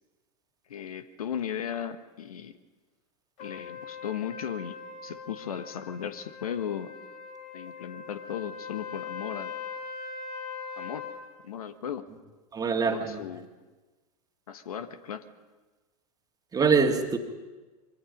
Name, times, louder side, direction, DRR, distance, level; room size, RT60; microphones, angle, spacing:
voice 1, 0.7-2.6 3.4-4.8 5.0-6.9 7.5-9.5 10.8-11.0 11.4-12.1 12.8-13.5 14.5-15.2, left 8 dB, 65° left, 12 dB, 1.3 m, -36 dB
Trumpet, 3.4-11.2, left 5 dB, 40° left, 5.3 m, -41 dB
voice 2, 12.5-13.2 16.5-17.2, right 5 dB, 20° right, 5 dB, 2.2 m, -24 dB
26.0 x 23.0 x 5.3 m, 1.2 s
figure-of-eight pair, 90°, 20 cm